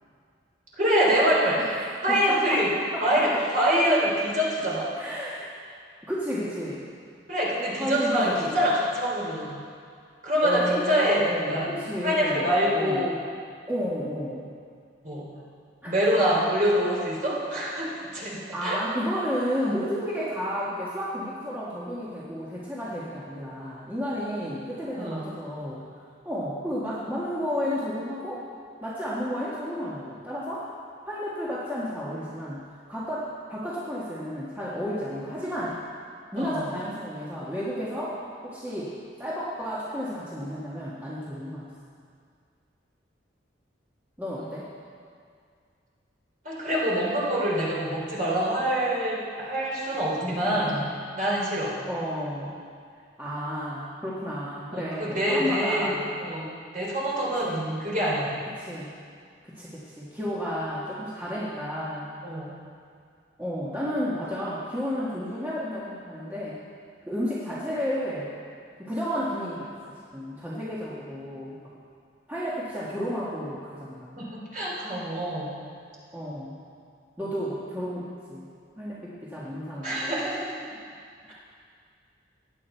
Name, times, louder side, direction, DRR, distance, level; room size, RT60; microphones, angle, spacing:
voice 1, 0.8-1.7 2.0-2.7 3.0-4.9 7.3-9.6 10.2-11.7 12.0-13.2 15.0-15.2 15.8-18.8 25.0-25.3 36.4-36.7 44.4-44.5 46.4-50.8 51.1-51.8 54.7-58.3 62.2-62.5 74.2-75.5 79.8-80.5, equal, 45° right, -5 dB, 3.4 m, -25 dB
voice 2, 2.1-3.4 5.0-5.5 6.1-6.9 7.7-8.6 10.4-12.5 12.7-13.1 13.7-14.5 15.8-15.9 18.5-25.8 26.2-28.4 28.8-30.7 31.1-32.6 32.9-35.8 36.3-41.7 44.2-44.7 50.2-50.8 51.9-52.5 53.2-56.1 57.4-57.8 58.6-58.9 59.4-62.1 63.4-66.6 67.1-68.3 68.8-71.5 72.3-74.2 76.1-76.6 77.2-78.5 78.8-80.1, equal, 10° right, -8 dB, 1.5 m, -32 dB
16.0 x 9.9 x 4.5 m, 2.2 s
head